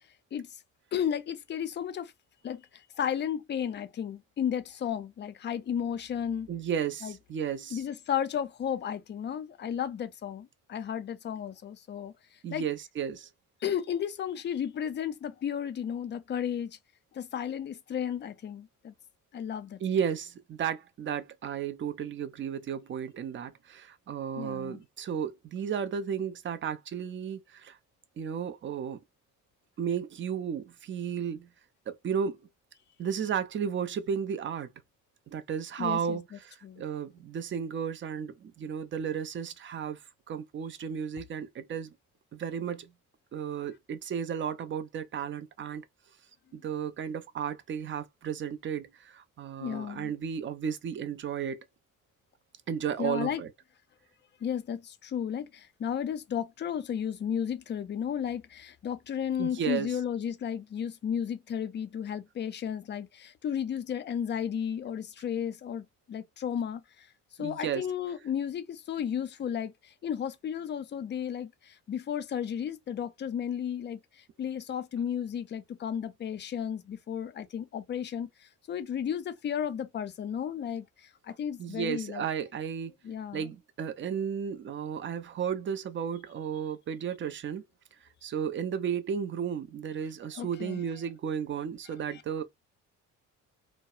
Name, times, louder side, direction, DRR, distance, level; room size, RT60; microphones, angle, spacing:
voice 1, 0.9-2.1 2.4-6.5 7.0-7.1 7.7-12.1 12.5-12.6 13.6-16.8 17.1-18.9 19.3-19.8 24.4-24.8 35.8-36.2 36.6-36.8 49.6-50.1 53.0-53.4 54.4-67.1 67.4-82.2 83.0-83.5 90.3-90.8 92.1-92.2, left 8 dB, 25° left, 0.5 m, -33 dB
voice 2, 6.5-7.8 12.4-13.3 19.8-27.8 28.2-29.0 29.8-31.5 31.9-32.4 33.0-34.7 35.3-40.0 40.3-41.9 42.3-42.9 43.3-45.8 46.5-51.6 52.7-53.5 59.4-60.0 67.4-67.9 81.6-82.9 83.3-87.6 88.2-92.4, right 7 dB, 30° right, 0.5 m, -33 dB
2.2 x 2.0 x 2.7 m
hypercardioid pair, 55°, 41 cm